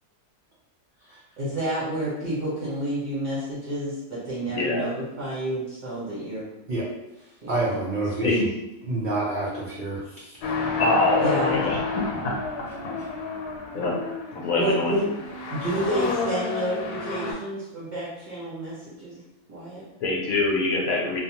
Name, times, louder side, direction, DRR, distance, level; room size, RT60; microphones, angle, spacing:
voice 1, 1.4-6.4 7.4-7.8 11.2-11.6 14.5-15.1 15.5-19.2 19.5-19.8, right 1 dB, 40° right, -9 dB, 0.7 m, -29 dB
voice 2, 4.5-4.9 8.2-8.5 10.8-11.8 12.2-12.3 12.6-12.7 13.7-14.0 14.3-15.0 20.0-21.2, left 2 dB, 70° left, -3 dB, 1.0 m, -24 dB
voice 3, 7.2-8.4 8.8-10.4, right 2 dB, 80° right, -8 dB, 0.4 m, -28 dB
sound 1, 10.4-17.3, left 4 dB, 90° left, 1.2 m, -30 dB
2.7 x 2.1 x 2.8 m, 0.93 s
omnidirectional pair, 1.6 m